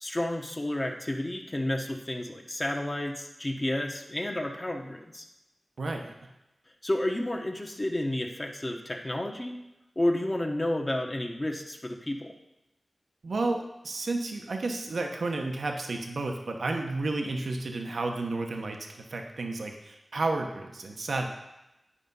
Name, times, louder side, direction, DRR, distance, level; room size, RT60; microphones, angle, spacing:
voice 1, 0.0-5.2 6.8-9.6 10.0-12.3, left 1 dB, 30° left, 1 dB, 1.0 m, -31 dB
voice 2, 5.8-6.3 13.2-21.3, right 2 dB, 85° right, 3 dB, 0.9 m, -32 dB
10.0 x 5.6 x 5.4 m, 0.94 s
wide cardioid pair, 70°, 0 cm